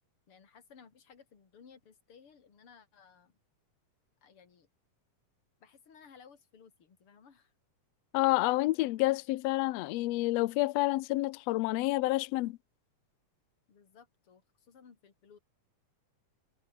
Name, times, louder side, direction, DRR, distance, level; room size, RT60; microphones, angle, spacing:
voice 1, 0.3-3.4 4.2-4.7 5.6-7.5 13.7-15.4, left 6 dB, 45° left, 3.8 m, -58 dB
voice 2, 8.1-12.6, left 19 dB, 75° left, 1.5 m, -29 dB
omnidirectional pair, 3.7 m